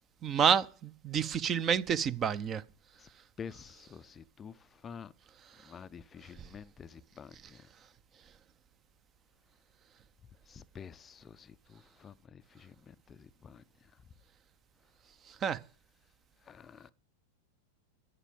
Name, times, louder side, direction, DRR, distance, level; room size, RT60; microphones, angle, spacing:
voice 1, 0.2-2.6 15.4-15.6, right 7 dB, 25° right, 0.7 m, -28 dB
voice 2, 3.4-4.5 4.8-5.1 5.7-7.3 10.5-12.7 13.1-13.6 16.5-16.9, left 7 dB, 20° left, 0.5 m, -48 dB
11.0 x 9.0 x 7.1 m
figure-of-eight pair, 90°, 0 cm